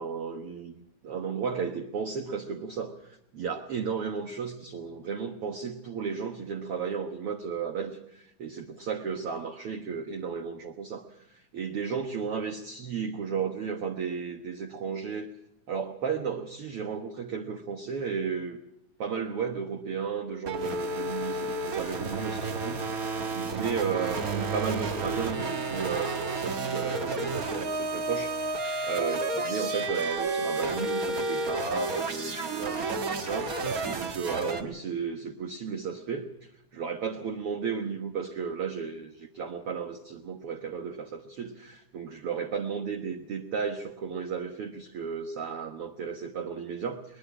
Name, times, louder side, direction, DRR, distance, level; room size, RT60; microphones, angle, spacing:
voice 1, 0.0-11.0 11.3-15.3 15.7-18.6 19.0-22.9 23.3-47.2, right 6 dB, 55° right, 4 dB, 1.9 m, -34 dB
sound 1, 20.5-34.6, right 3 dB, 35° right, 1.5 m, -31 dB
21.5 x 21.0 x 6.1 m, 0.80 s
omnidirectional pair, 3.6 m